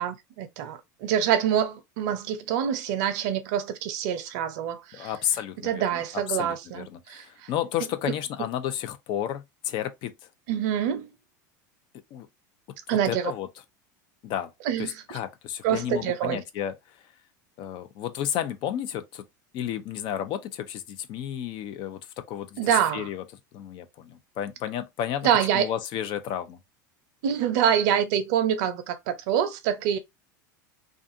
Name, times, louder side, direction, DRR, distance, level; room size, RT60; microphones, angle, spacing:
voice 1, 0.0-5.1 5.6-7.5 10.5-11.1 12.9-13.3 14.6-15.0 15.6-16.4 22.6-23.1 25.2-25.7 27.2-30.0, right 9 dB, 65° right, 0.6 m, -26 dB
voice 2, 4.9-5.8 6.3-10.1 12.1-12.3 13.1-13.5 14.2-14.5 14.8-16.7 17.6-19.2 19.5-23.2 23.5-25.3 25.5-26.6, left 10 dB, 50° left, 0.5 m, -32 dB
2.5 x 2.4 x 2.6 m
hypercardioid pair, 95°, 10 cm